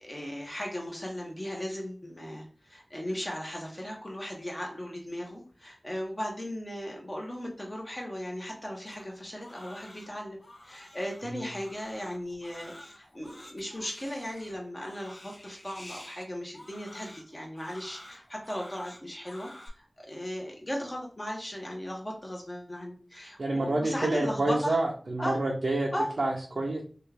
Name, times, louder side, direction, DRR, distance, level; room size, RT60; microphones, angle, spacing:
voice 1, 0.0-10.4 10.6-19.5 19.8-24.8 25.2-25.4 25.9-26.1, equal, 30° left, 0 dB, 1.1 m, -37 dB
Crying sobbing, 8.9-19.7, left 1 dB, 55° left, 0.8 m, -50 dB
voice 2, 23.4-25.9 26.2-26.8, right 2 dB, 80° right, -2 dB, 0.5 m, -28 dB
3.0 x 2.4 x 3.3 m, 0.41 s
wide cardioid pair, 45°, 0 cm